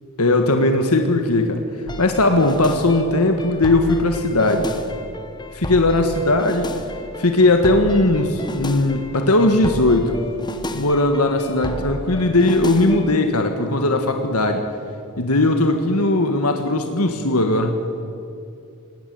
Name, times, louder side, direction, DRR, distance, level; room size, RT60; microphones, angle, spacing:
voice 1, 0.2-1.6 2.0-4.7 5.5-6.7 7.2-10.1 10.7-14.6 15.2-17.8, left 2 dB, 80° left, 5 dB, 1.6 m, -18 dB
sound 1, 1.9-13.2, left 1 dB, 20° left, 1.3 m, -32 dB
19.5 x 17.5 x 9.3 m, 2.6 s
head